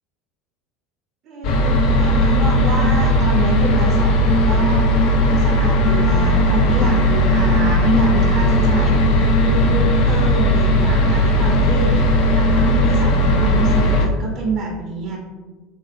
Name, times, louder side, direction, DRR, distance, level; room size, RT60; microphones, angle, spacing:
voice 1, 1.3-4.9 5.3-9.0 9.4-15.2, right 2 dB, 55° right, -1 dB, 0.5 m, -27 dB
sound 1, 1.4-14.1, equal, 60° left, 0.4 m, -16 dB
2.9 x 2.7 x 2.4 m, 1.3 s
hypercardioid pair, 80°, 0 cm